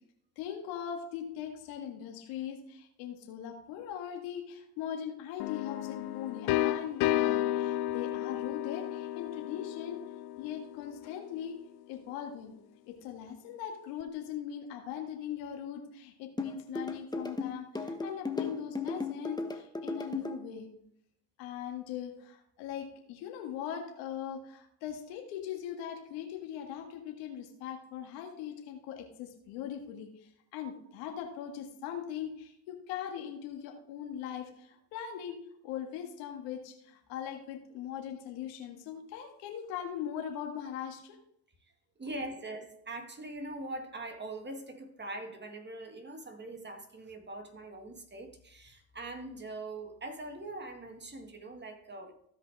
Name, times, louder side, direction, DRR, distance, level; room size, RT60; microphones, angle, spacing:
voice 1, 0.4-10.0 10.4-11.6 11.9-12.5 12.9-20.7 21.4-35.4 35.6-41.2, left 9 dB, 85° left, 1.9 m, -40 dB
sound 1, 5.4-11.1, left 14 dB, 60° left, 0.6 m, -32 dB
sound 2, 16.4-20.4, left 3 dB, 10° left, 1.2 m, -35 dB
voice 2, 42.0-52.1, right 2 dB, 25° right, 2.0 m, -42 dB
15.5 x 5.2 x 3.5 m
supercardioid pair, 75°, 42 cm